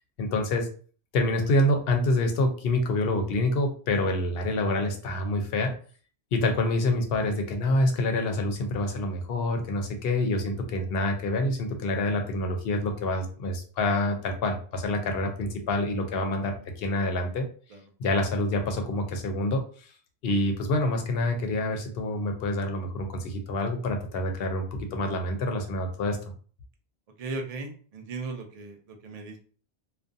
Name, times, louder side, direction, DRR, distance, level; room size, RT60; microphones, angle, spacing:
voice 1, 0.2-0.7 1.1-5.7 6.3-17.5 18.0-19.6 20.2-26.2, left 1 dB, 65° left, 4 dB, 0.7 m, -27 dB
voice 2, 27.2-29.4, right 3 dB, 50° right, 3 dB, 0.4 m, -37 dB
2.4 x 2.2 x 2.5 m, 0.42 s
omnidirectional pair, 1.1 m